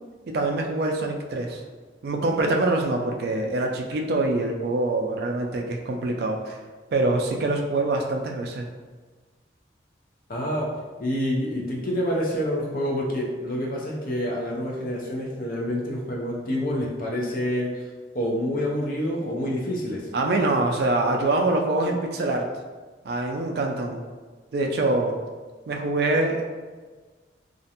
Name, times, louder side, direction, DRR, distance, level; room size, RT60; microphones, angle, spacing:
voice 1, 0.3-1.6 2.0-6.6 6.9-8.7 20.1-22.5 23.0-24.0 24.5-25.1 25.7-26.4, right 2 dB, 60° right, 2 dB, 0.3 m, -24 dB
voice 2, 10.3-10.7 11.0-17.8 18.1-20.0, equal, 50° left, -2 dB, 0.5 m, -27 dB
2.4 x 2.1 x 2.8 m, 1.4 s
head